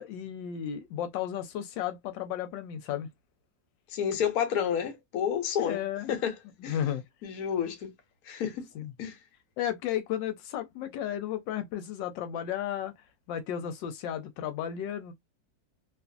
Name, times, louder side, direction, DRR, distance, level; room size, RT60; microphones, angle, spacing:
voice 1, 0.0-3.1 5.6-6.1 6.7-7.0 8.7-8.9 9.6-12.9 13.3-15.1, left 10 dB, 85° left, 1.3 m, -33 dB
voice 2, 3.9-5.8 6.1-6.3 6.6-6.8 7.2-7.9 8.2-8.6 9.0-9.2, left 8 dB, 65° left, 1.2 m, -30 dB
2.8 x 2.5 x 2.3 m
omnidirectional pair, 1.9 m